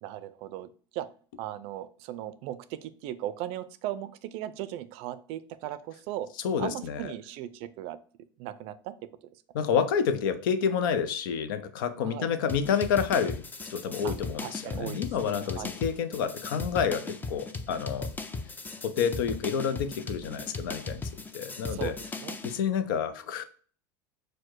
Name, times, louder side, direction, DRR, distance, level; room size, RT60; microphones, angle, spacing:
voice 1, 0.0-1.1 1.4-6.3 6.6-8.0 8.4-9.0 12.0-12.3 14.0-14.2 14.4-15.7 21.7-21.9 22.2-22.4, right 13 dB, 55° right, 14 dB, 0.4 m, -37 dB
voice 2, 6.4-7.1 9.5-13.4 13.7-18.1 18.8-21.0 21.3-22.0 22.4-23.4, left 7 dB, 75° left, 11 dB, 0.5 m, -29 dB
sound 1, 12.5-22.6, left 3 dB, 15° left, 0.5 m, -38 dB
4.5 x 2.1 x 4.5 m, 0.43 s
hypercardioid pair, 100°, 11 cm